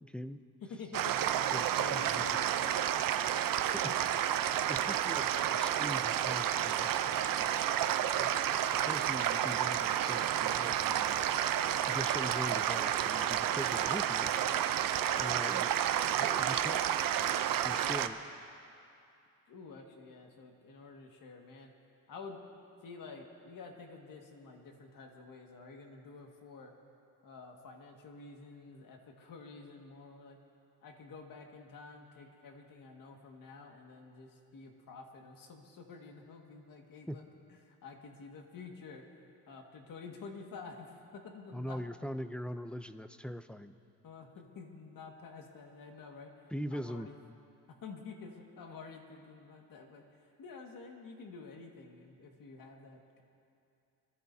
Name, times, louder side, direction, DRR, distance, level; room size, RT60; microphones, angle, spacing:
voice 1, 0.0-0.4 1.5-1.6 1.9-2.2 3.6-4.2 4.7-7.5 8.0-8.3 8.9-11.2 11.9-14.3 15.2-18.2 37.1-37.2 41.5-43.8 46.5-47.1, equal, 5° left, 11 dB, 0.4 m, -42 dB
voice 2, 0.6-2.8 8.1-8.3 16.0-16.2 17.6-18.0 19.5-21.7 22.1-22.4 22.8-26.7 27.2-30.4 30.8-37.2 37.5-39.2 39.5-41.8 44.0-47.1 47.8-53.2, left 4 dB, 60° left, 2 dB, 1.9 m, -50 dB
sound 1, 0.9-18.1, right 10 dB, 60° right, 0.7 m, -31 dB
24.5 x 14.5 x 2.7 m, 2.6 s
cardioid pair, 100°, 37 cm